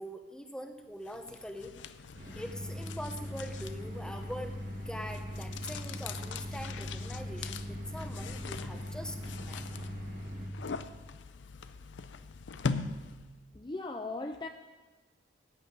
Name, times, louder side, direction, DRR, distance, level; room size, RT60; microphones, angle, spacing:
voice 1, 0.0-1.7 2.4-4.6 4.9-9.6, equal, 5° left, 5 dB, 0.9 m, -43 dB
sound 1, 1.0-13.4, left 4 dB, 85° left, 0.6 m, -42 dB
sound 2, 2.1-10.5, equal, 50° right, 1.8 m, -40 dB
voice 2, 13.5-14.5, left 2 dB, 25° left, 5 dB, 0.5 m, -38 dB
14.5 x 5.6 x 9.4 m, 1.3 s
head